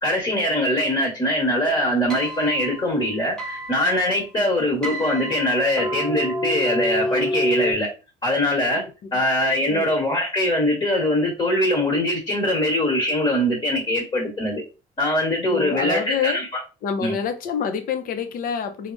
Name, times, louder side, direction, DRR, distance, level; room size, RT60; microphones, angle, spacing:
voice 1, 0.0-7.9 8.2-8.8 9.1-14.6 15.0-16.5 17.0-17.2, left 1 dB, 30° left, 1.2 m, -22 dB
sound 1, 1.7-7.7, left 1 dB, 5° left, 1.0 m, -29 dB
voice 2, 15.5-16.4 16.8-18.9, left 6 dB, 55° left, 0.6 m, -27 dB
3.4 x 2.1 x 2.5 m
cardioid pair, 110°, 17 cm